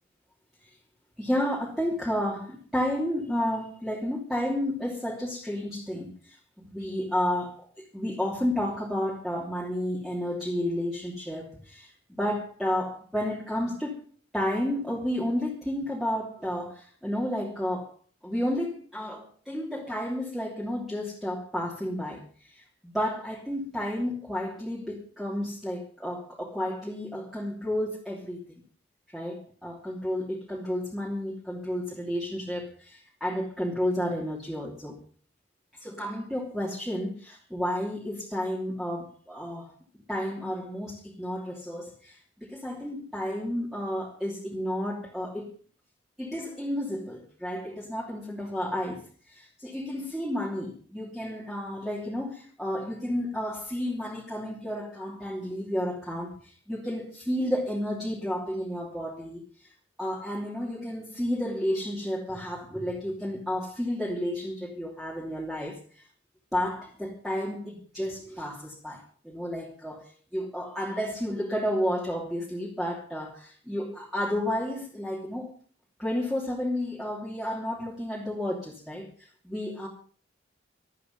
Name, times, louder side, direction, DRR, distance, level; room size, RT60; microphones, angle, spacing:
voice 1, 1.2-14.0 14.3-18.0 18.2-22.2 22.5-28.5 29.1-35.0 35.8-39.7 40.1-45.5 46.2-49.0 49.3-56.4 56.7-59.4 60.0-66.0 66.5-75.5 76.0-79.1 79.4-79.9, equal, ahead, 2.9 m, -31 dB
25.0 x 8.6 x 5.4 m
head